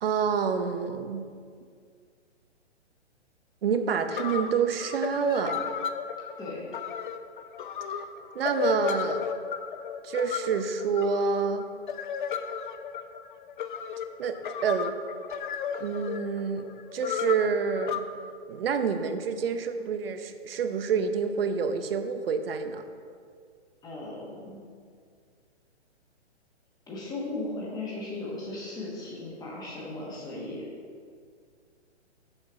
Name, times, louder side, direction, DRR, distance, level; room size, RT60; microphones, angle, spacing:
voice 1, 0.0-1.3 3.6-5.6 8.3-9.2 10.0-11.6 14.2-14.4 14.6-14.9 15.8-18.0 18.5-22.8, right 6 dB, 55° right, 8 dB, 0.7 m, -28 dB
sound 1, 3.7-3.8 4.1-18.0, left 7 dB, 45° left, 0.5 m, -34 dB
voice 2, 6.4-6.7 23.8-24.7 26.9-30.6, left 2 dB, 10° left, -4 dB, 1.2 m, -37 dB
6.5 x 4.6 x 5.9 m, 2.1 s
hypercardioid pair, 140°, 34 cm